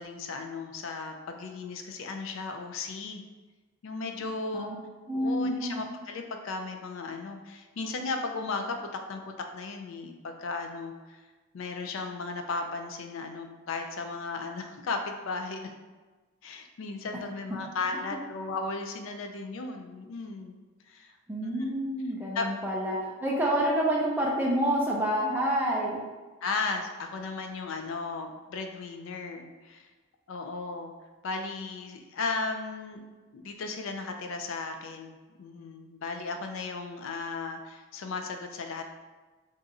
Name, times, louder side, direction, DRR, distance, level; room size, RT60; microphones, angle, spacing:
voice 1, 0.0-3.2 3.8-4.7 5.1-11.2 11.5-15.7 16.4-20.6 20.9-21.1 21.4-21.7 22.3-22.5 26.4-29.8 30.3-30.9 31.2-33.0 33.3-38.8, left 3 dB, 65° left, 5 dB, 0.4 m, -35 dB
voice 2, 5.1-5.9 18.1-18.2 21.3-26.0, equal, 10° right, -3 dB, 0.4 m, -28 dB
2.5 x 2.4 x 4.0 m, 1.3 s
head